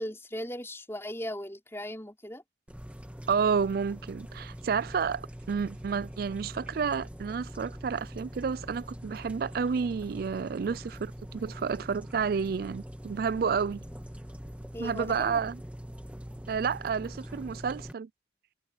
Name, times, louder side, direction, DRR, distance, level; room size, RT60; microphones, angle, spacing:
voice 1, 0.0-2.4 14.7-15.4, left 1 dB, 15° left, 4.6 m, -38 dB
sound 1, 2.7-17.9, equal, 10° right, 1.6 m, -43 dB
voice 2, 3.3-13.8 14.8-15.6 16.5-18.1, right 6 dB, 55° right, 0.3 m, -30 dB
head